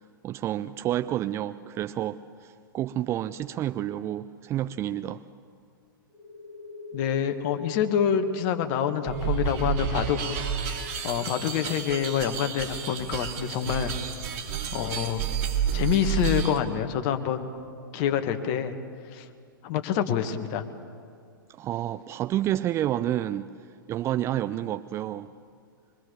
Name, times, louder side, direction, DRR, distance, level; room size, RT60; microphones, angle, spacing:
voice 1, 0.2-5.2 21.5-23.5 23.9-25.3, right 12 dB, 25° right, 0.5 m, -29 dB
sound 1, 6.1-13.6, left 3 dB, 15° left, 4.5 m, -42 dB
voice 2, 6.9-10.2 11.0-13.9 14.7-15.2 15.7-17.5 17.9-18.7 19.1-19.3 19.6-20.6, left 9 dB, 40° left, 1.7 m, -26 dB
sound 2, 9.0-16.6, right 7 dB, 45° right, 2.4 m, -30 dB
24.0 x 23.0 x 7.0 m
figure-of-eight pair, 100°, 11 cm